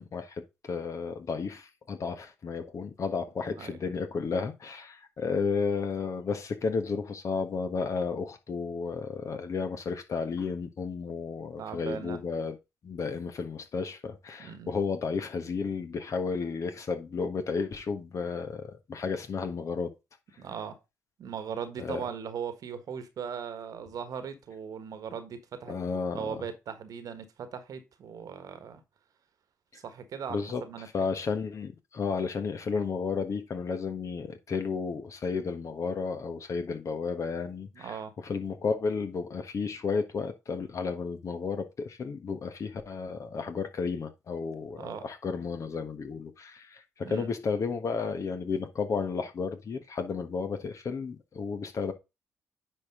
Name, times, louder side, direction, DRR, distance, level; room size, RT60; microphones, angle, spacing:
voice 1, 0.0-12.6 12.8-19.9 21.8-22.0 25.7-26.4 30.3-51.9, left 5 dB, 45° left, 1.4 m, -33 dB
voice 2, 11.6-12.2 14.4-14.7 20.4-20.8 21.2-25.8 26.1-28.8 29.7-31.1 37.7-38.1 44.8-45.1 47.0-47.3, right 7 dB, 55° right, 1.5 m, -39 dB
9.6 x 4.8 x 3.7 m
hypercardioid pair, 45°, 7 cm